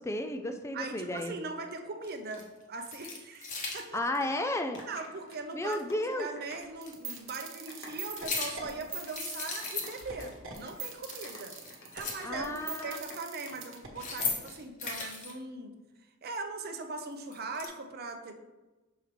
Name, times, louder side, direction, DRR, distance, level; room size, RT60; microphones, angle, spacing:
voice 1, 0.0-1.3 3.9-4.8 5.5-6.3 12.2-13.0, left 1 dB, 15° left, 7 dB, 0.3 m, -33 dB
voice 2, 0.7-4.1 4.9-11.5 11.9-15.7 16.2-18.4, right 3 dB, 45° right, 5 dB, 0.6 m, -40 dB
sound 1, 1.2-1.3 2.0-2.4 2.8-3.8 5.7-5.8 6.8-6.9 8.0-8.7 9.1-10.3 10.5-10.7 11.0-12.4 13.8-15.3 17.0-17.7, left 4 dB, 35° left, 1.0 m, -37 dB
sound 2, 3.8-6.8 7.0-7.3 7.5-13.6 13.8-14.1, left 1 dB, 55° left, 1.4 m, -50 dB
sound 3, 6.8-14.3, right 5 dB, 65° right, 1.1 m, -42 dB
6.3 x 4.6 x 3.3 m, 1.1 s
head